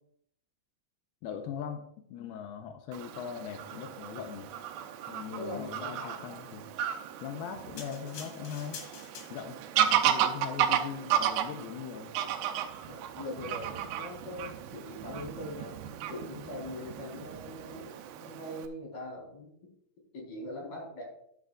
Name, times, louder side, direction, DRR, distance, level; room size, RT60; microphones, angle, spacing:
voice 1, 1.2-4.5 5.1-6.7 7.2-8.9 9.3-9.6 9.9-12.2 18.2-18.4, left 8 dB, 85° left, 5 dB, 2.2 m, -40 dB
Fowl / Bird vocalization bird call bird song, 2.9-18.7, right 10 dB, 80° right, 2.4 m, -34 dB
voice 2, 5.4-6.4 12.8-15.7 16.1-19.7 20.1-21.0, left 1 dB, 30° left, -3 dB, 5.2 m, -42 dB
sound 1, 7.8-9.7 10.4-10.5, left 6 dB, 70° left, 3.5 m, -46 dB
13.0 x 9.3 x 2.5 m, 0.70 s
omnidirectional pair, 5.6 m